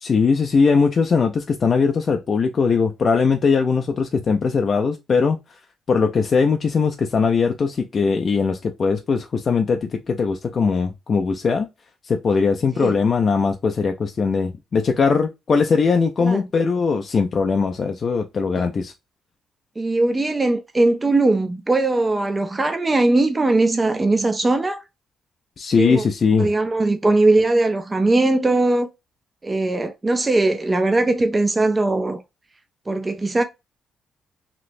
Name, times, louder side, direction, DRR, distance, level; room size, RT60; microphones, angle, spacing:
voice 1, 0.0-5.4 5.9-11.7 12.0-18.9 25.6-26.5, left 5 dB, 45° left, 0.4 m, -20 dB
voice 2, 19.8-24.8 25.8-26.0 26.4-28.9 29.4-32.2 32.9-33.4, right 2 dB, 20° right, 0.4 m, -20 dB
3.1 x 2.9 x 2.5 m
cardioid pair, 105°, 0 cm